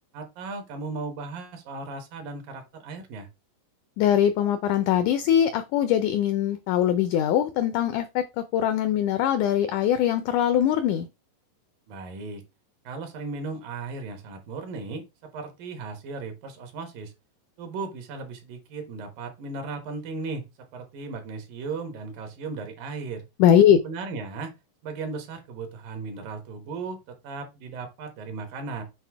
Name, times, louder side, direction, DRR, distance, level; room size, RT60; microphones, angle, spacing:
voice 1, 0.1-3.3 11.9-12.4 12.8-17.1 17.6-20.5 20.7-23.2 23.8-24.5 24.8-28.8, right 4 dB, 75° right, 3.0 m, -36 dB
voice 2, 4.0-8.3 8.5-11.1 23.4-23.8, left 10 dB, 85° left, 1.7 m, -21 dB
7.8 x 2.7 x 4.6 m
omnidirectional pair, 4.1 m